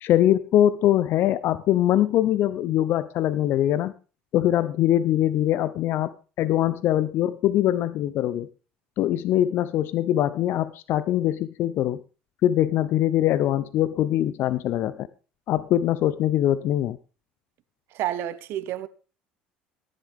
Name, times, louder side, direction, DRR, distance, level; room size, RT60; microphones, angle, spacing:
voice 1, 0.0-3.9 4.3-8.5 9.0-12.0 12.4-15.1 15.5-17.0, left 12 dB, 60° left, 0.6 m, -22 dB
voice 2, 17.9-18.9, right 12 dB, 65° right, 1.0 m, -29 dB
13.5 x 10.5 x 3.5 m
hypercardioid pair, 70°, 4 cm